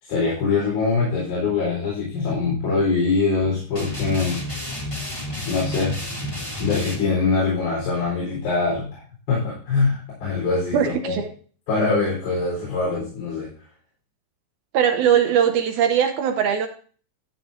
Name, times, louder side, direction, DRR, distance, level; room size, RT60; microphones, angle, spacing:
voice 1, 0.0-4.4 5.4-6.0 6.6-8.9 9.3-10.8 11.0-11.2 11.7-13.5, left 4 dB, 75° left, 6.0 m, -23 dB
sound 1, 3.7-7.0, left 1 dB, 10° left, 1.9 m, -30 dB
voice 2, 10.7-11.3 14.7-16.7, right 8 dB, 75° right, 1.9 m, -20 dB
13.0 x 9.4 x 2.7 m
omnidirectional pair, 4.3 m